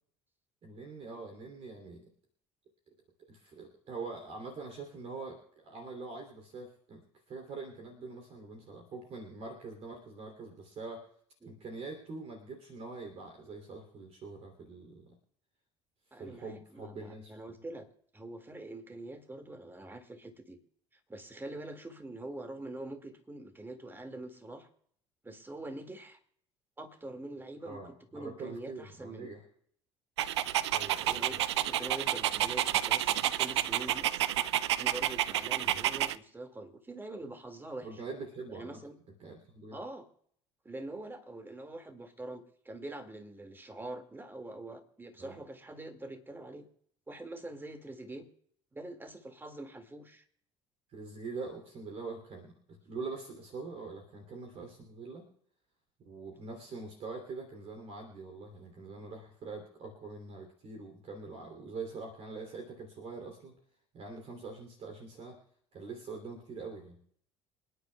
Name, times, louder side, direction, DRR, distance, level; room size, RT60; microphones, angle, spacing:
voice 1, 0.6-2.0 3.3-11.0 11.4-15.1 16.1-17.3 27.6-29.4 30.7-31.4 35.6-35.8 37.8-38.8 39.2-39.8 45.2-45.4 50.9-55.3 56.0-63.5 63.9-65.4 65.7-67.0, right 3 dB, 45° right, 3 dB, 3.0 m, -44 dB
voice 2, 16.1-17.9 18.1-20.6 21.1-24.7 25.2-26.2 26.8-29.3 30.8-34.1 34.8-37.9 38.5-39.0 39.7-40.1 40.6-46.7 47.1-48.2 48.7-50.2, right 2 dB, 15° right, 7 dB, 2.1 m, -44 dB
Dog, 30.2-36.2, right 12 dB, 80° right, 0.4 m, -30 dB
27.5 x 10.0 x 2.3 m, 0.62 s
hypercardioid pair, 60°, 14 cm